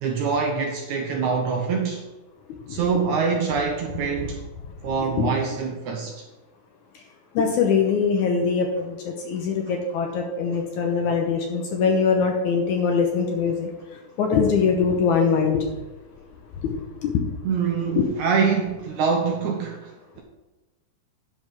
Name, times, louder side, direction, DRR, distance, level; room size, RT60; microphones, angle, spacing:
voice 1, 0.0-2.0 2.7-4.4 4.8-6.3 17.4-20.2, right 5 dB, 65° right, 2.0 m, -25 dB
voice 2, 7.4-13.7 14.2-15.7 16.6-17.1 18.0-18.1, left 5 dB, 70° left, 2.1 m, -22 dB
10.5 x 5.1 x 6.0 m
omnidirectional pair, 4.2 m